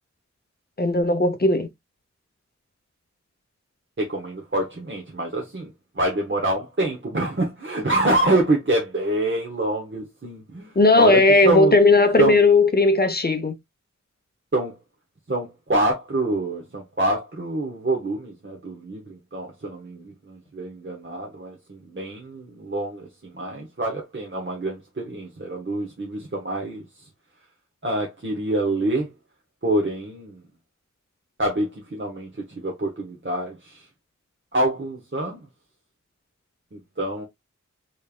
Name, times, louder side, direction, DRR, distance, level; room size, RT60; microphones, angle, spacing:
voice 1, 0.8-1.7 10.8-13.5, left 2 dB, 35° left, 0.7 m, -17 dB
voice 2, 4.0-11.7 12.2-12.4 14.5-14.7 15.3-26.8 27.8-29.1 29.6-30.4 31.4-33.9 34.5-35.5 36.7-37.2, right 1 dB, 40° right, 1.0 m, -26 dB
3.5 x 3.2 x 2.4 m
wide cardioid pair, 50°, 30 cm